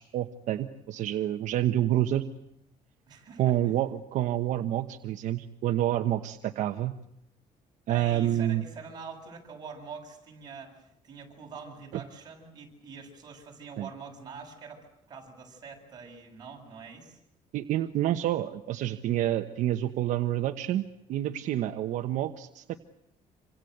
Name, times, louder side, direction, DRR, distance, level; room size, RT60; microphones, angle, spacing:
voice 1, 0.0-2.2 3.4-6.9 7.9-8.6 13.8-13.9 17.5-22.8, right 12 dB, 65° right, 6 dB, 1.2 m, -28 dB
voice 2, 3.1-3.7 7.9-17.2, right 5 dB, 30° right, 1 dB, 7.6 m, -45 dB
27.5 x 26.0 x 8.1 m, 0.77 s
cardioid pair, 175°, 14 cm